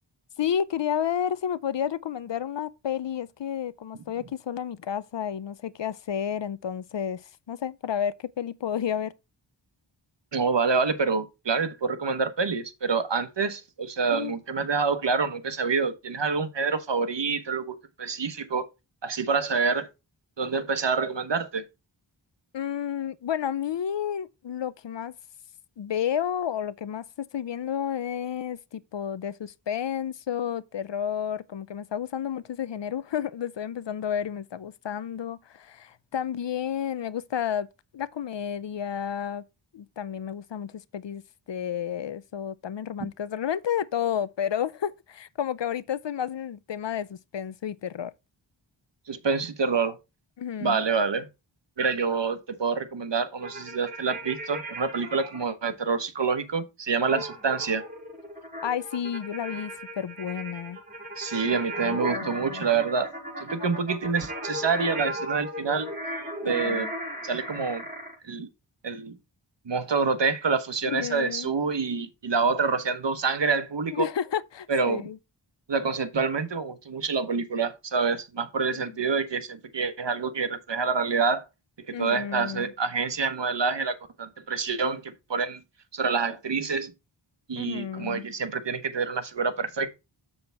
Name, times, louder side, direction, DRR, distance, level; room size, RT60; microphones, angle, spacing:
voice 1, 0.4-7.2 7.5-9.1 14.1-14.3 22.5-25.1 25.8-37.7 37.9-39.4 39.7-41.2 41.5-48.1 50.4-50.8 57.1-57.2 58.6-60.8 61.8-62.6 66.4-66.9 70.8-71.5 73.9-75.2 78.7-78.8 81.9-82.7 87.6-88.2, left 9 dB, 65° left, 0.6 m, -31 dB
voice 2, 10.3-18.7 19.0-19.9 20.4-21.6 49.1-50.0 50.6-51.3 51.8-57.8 61.2-65.9 66.4-66.9 67.2-67.8 68.2-68.5 68.8-69.2 69.6-74.1 74.7-75.0 75.7-81.5 81.8-85.6 85.9-86.9 87.5-89.9, right 5 dB, 65° right, 1.2 m, -27 dB
sound 1, 53.4-55.4 57.1-68.1, right 1 dB, 15° right, 5.6 m, -36 dB
7.0 x 6.8 x 3.4 m
wide cardioid pair, 45°, 47 cm